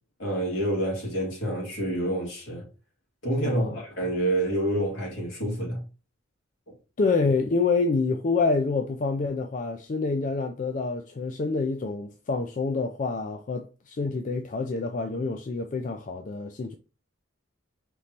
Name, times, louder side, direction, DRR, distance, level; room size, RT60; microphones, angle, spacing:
voice 1, 0.2-2.6 3.2-5.8, right 1 dB, 70° left, 2.3 m, -28 dB
voice 2, 3.4-3.8 7.0-16.7, left 4 dB, 40° left, 0.4 m, -27 dB
5.1 x 3.1 x 2.8 m
head